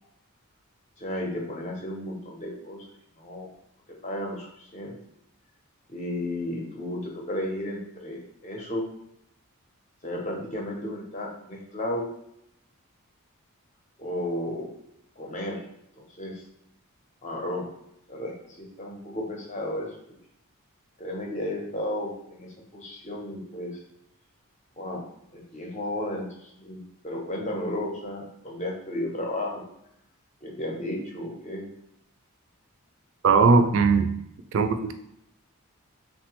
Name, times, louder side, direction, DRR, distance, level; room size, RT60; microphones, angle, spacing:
voice 1, 1.0-2.9 3.2-3.5 4.0-4.5 4.7-4.9 5.9-8.8 10.0-12.1 14.0-14.7 15.2-15.6 16.0-16.4 17.2-17.7 18.1-20.2 21.0-23.8 24.8-25.0 25.3-29.6 30.4-31.7, left 1 dB, 30° left, -1 dB, 0.6 m, -33 dB
voice 2, 33.2-34.1 34.5-34.9, right 4 dB, 55° right, 7 dB, 0.3 m, -19 dB
3.3 x 2.1 x 2.9 m, 0.77 s
head